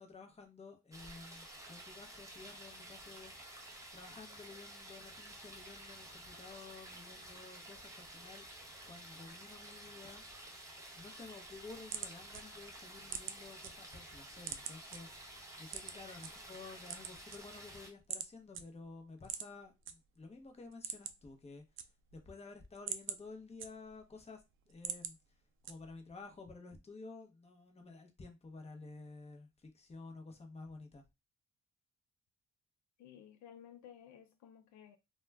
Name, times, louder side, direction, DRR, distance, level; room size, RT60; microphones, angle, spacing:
voice 1, 0.0-3.3 3.9-8.5 8.8-10.2 10.9-21.6 22.1-25.2 25.6-31.0, left 3 dB, 20° left, 0.7 m, -52 dB
sound 1, 0.9-17.9, right 1 dB, 10° right, 0.8 m, -52 dB
sound 2, 11.5-13.7 14.1-15.0 15.7-16.3 16.8-17.7 18.1-18.3 18.5-18.6 19.2-19.9 20.3-20.4 20.7-21.3 21.6-22.3 22.6-24.1 24.5-25.1 25.6-26.1, right 8 dB, 45° right, 0.4 m, -43 dB
voice 2, 33.0-35.0, left 9 dB, 70° left, 0.5 m, -55 dB
2.3 x 2.2 x 3.3 m
cardioid pair, 90°, 30 cm